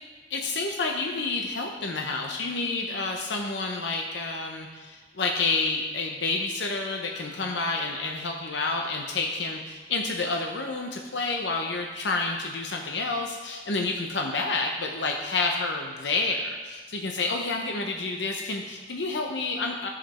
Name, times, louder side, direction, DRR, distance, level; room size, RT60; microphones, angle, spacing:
voice 1, 0.3-19.9, left 3 dB, 70° left, 2 dB, 0.8 m, -29 dB
10.5 x 7.7 x 4.3 m, 1.3 s
head